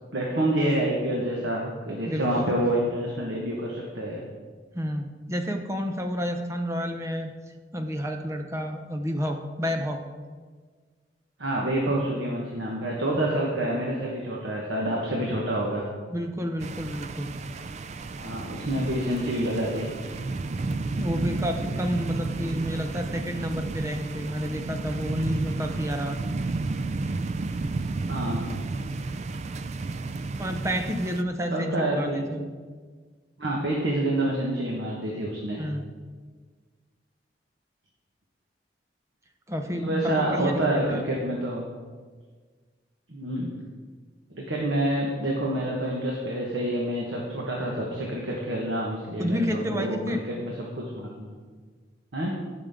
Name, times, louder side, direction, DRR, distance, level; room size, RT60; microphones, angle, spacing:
voice 1, 0.1-4.2 11.4-15.8 18.1-19.9 28.1-28.4 31.5-32.3 33.4-35.6 39.7-41.7 43.1-43.5 44.3-51.4 52.1-52.3, right 1 dB, 90° right, -3 dB, 1.5 m, -28 dB
voice 2, 2.0-2.5 4.7-7.3 7.7-10.0 13.1-13.3 16.1-17.3 21.0-26.2 30.4-32.5 35.6-35.9 39.5-41.0 49.2-50.2, equal, 15° right, 5 dB, 0.8 m, -30 dB
sound 1, 16.6-31.2, right 3 dB, 40° right, 0.3 m, -32 dB
15.0 x 6.2 x 3.8 m, 1.5 s
head